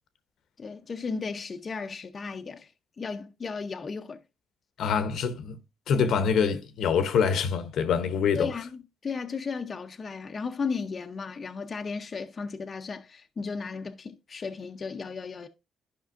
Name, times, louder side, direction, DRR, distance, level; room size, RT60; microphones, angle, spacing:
voice 1, 0.6-2.7 3.0-4.2 8.3-15.5, left 5 dB, 40° left, 0.6 m, -35 dB
voice 2, 4.8-5.6 5.9-8.5, left 6 dB, 75° left, 0.8 m, -25 dB
12.0 x 5.3 x 2.5 m
cardioid pair, 90°, 0 cm